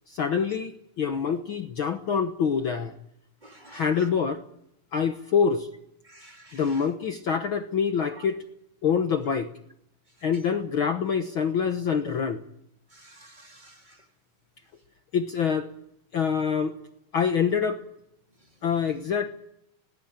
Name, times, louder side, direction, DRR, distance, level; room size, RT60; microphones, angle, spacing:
voice 1, 0.1-2.9 3.7-4.4 4.9-5.7 6.5-8.4 8.8-9.5 10.2-12.4 15.1-15.7 16.1-16.7 17.1-17.8 18.6-19.3, left 6 dB, 80° left, 7 dB, 1.1 m, -25 dB
voice 2, 3.4-3.8 6.1-6.8 8.2-8.3 12.9-14.0, right 2 dB, 15° right, 4 dB, 2.6 m, -50 dB
20.0 x 19.0 x 9.0 m, 0.77 s
omnidirectional pair, 4.0 m